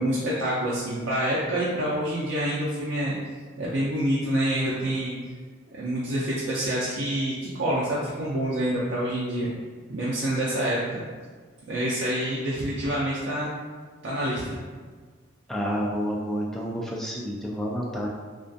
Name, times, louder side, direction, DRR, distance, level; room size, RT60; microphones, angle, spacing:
voice 1, 0.0-3.2 3.6-5.1 5.7-9.5 9.9-11.0 11.7-13.5 14.0-14.6, right 1 dB, 65° right, -7 dB, 0.4 m, -27 dB
voice 2, 15.5-18.1, equal, ahead, -3 dB, 0.3 m, -29 dB
2.4 x 2.3 x 2.5 m, 1.5 s
head